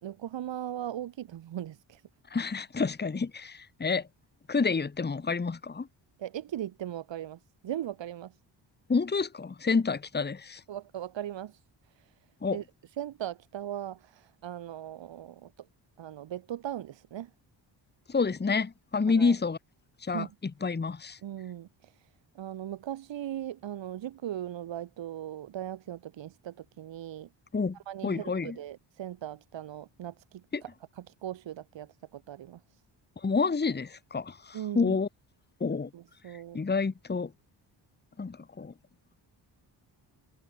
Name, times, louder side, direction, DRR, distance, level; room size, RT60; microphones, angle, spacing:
voice 1, 0.0-2.0 6.2-8.4 10.7-11.6 11.9-12.1 12.5-12.6 13.0-15.7 16.0-17.3 19.1-19.3 20.1-20.3 21.2-22.1 22.3-27.3 27.9-30.7 31.0-32.8 34.5-35.0 35.9-36.6, right 11 dB, 75° right, 2.1 m, -39 dB
voice 2, 2.3-4.1 4.5-5.9 8.9-10.6 12.4-12.6 18.1-19.6 20.0-21.2 27.5-27.8 28.0-28.6 30.5-30.6 33.2-35.1 35.6-35.9 36.3-37.3 38.2-38.7, left 4 dB, 20° left, 1.7 m, -29 dB
cardioid pair, 120°, 45 cm